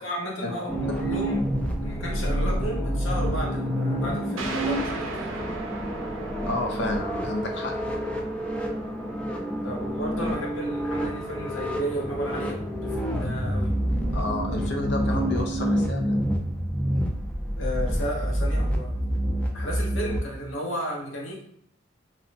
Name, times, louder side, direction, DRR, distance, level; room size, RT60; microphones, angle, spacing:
voice 1, 0.0-1.5 1.8-5.4 9.6-13.8 17.6-18.9 19.5-21.4, equal, 80° left, -2 dB, 1.0 m, -33 dB
sound 1, 0.7-20.2, equal, 5° left, 0.3 m, -28 dB
sound 2, 4.4-13.6, right 2 dB, 85° right, 0.5 m, -39 dB
voice 2, 6.5-7.7 14.1-16.1, left 2 dB, 60° left, 3 dB, 0.6 m, -30 dB
2.7 x 2.1 x 4.0 m, 0.67 s
head